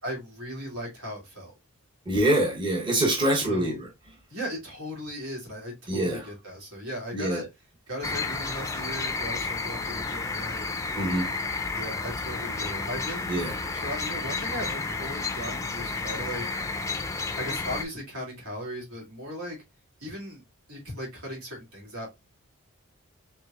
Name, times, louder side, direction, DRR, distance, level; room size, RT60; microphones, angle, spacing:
voice 1, 0.0-1.5 3.3-3.7 4.3-7.5 7.9-10.7 11.7-13.3 13.7-16.5 17.3-19.6 20.0-20.4 20.7-22.1, equal, 80° right, 2.6 m, -37 dB
voice 2, 2.1-3.9 5.9-6.3 7.1-7.4 11.0-11.3 13.3-13.6, right 1 dB, 20° right, 0.9 m, -25 dB
sound 1, 8.0-17.8, left 3 dB, 15° left, 0.4 m, -31 dB
4.7 x 3.4 x 2.3 m
head